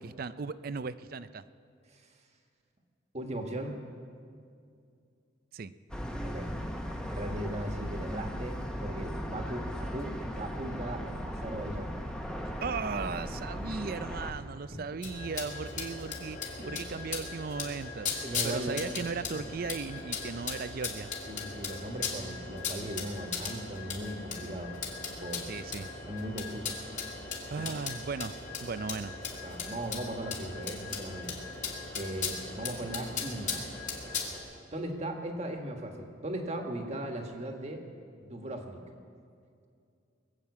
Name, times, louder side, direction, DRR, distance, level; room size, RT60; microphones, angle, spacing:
voice 1, 0.0-1.4 5.5-5.7 12.6-21.1 25.5-25.9 27.5-29.2, right 5 dB, 50° right, 14 dB, 0.4 m, -37 dB
voice 2, 3.1-3.8 6.2-6.5 7.1-11.9 14.3-14.4 14.7-14.8 16.6-16.8 18.2-18.8 19.4-19.5 21.2-24.8 25.1-25.5 26.0-26.8 27.6-27.8 29.4-31.4 31.9-33.6 34.7-37.8 38.2-38.8, right 1 dB, 35° right, 3 dB, 1.5 m, -38 dB
sound 1, 5.9-14.3, equal, 5° left, 1.0 m, -37 dB
sound 2, 15.0-34.4, left 5 dB, 40° left, 2.3 m, -38 dB
21.0 x 7.3 x 8.3 m, 2.4 s
head